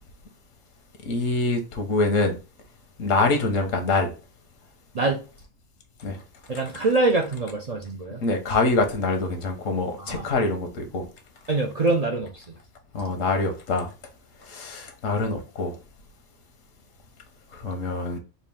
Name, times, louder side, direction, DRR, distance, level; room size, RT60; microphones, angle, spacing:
voice 1, 1.0-2.4 3.0-4.1 6.0-6.2 8.2-11.1 12.9-13.9 14.5-15.8 17.6-18.2, left 3 dB, 90° left, 1.3 m, -25 dB
voice 2, 6.5-8.2 10.0-10.2 11.5-12.4, right 3 dB, 55° right, 0.4 m, -24 dB
4.2 x 2.4 x 3.4 m
omnidirectional pair, 1.3 m